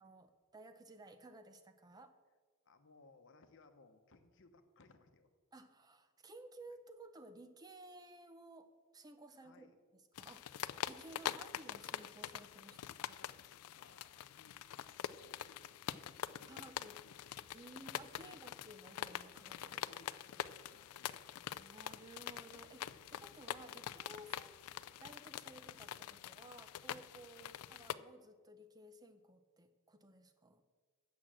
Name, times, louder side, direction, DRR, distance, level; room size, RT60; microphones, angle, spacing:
voice 1, 0.0-2.2 5.5-9.7 10.2-10.6 10.9-13.1 16.5-17.0 17.5-19.8 21.6-24.6 25.0-30.6, right 1 dB, 20° right, 9 dB, 0.5 m, -56 dB
voice 2, 2.6-5.3 9.4-9.8 12.7-14.7 15.1-16.0 16.3-17.4 18.2-18.5 19.6-21.2 27.3-27.5, left 3 dB, 60° left, 7 dB, 0.9 m, -66 dB
sound 1, 10.2-27.9, left 10 dB, 90° left, 0.4 m, -45 dB
8.6 x 6.1 x 7.4 m, 1.6 s
head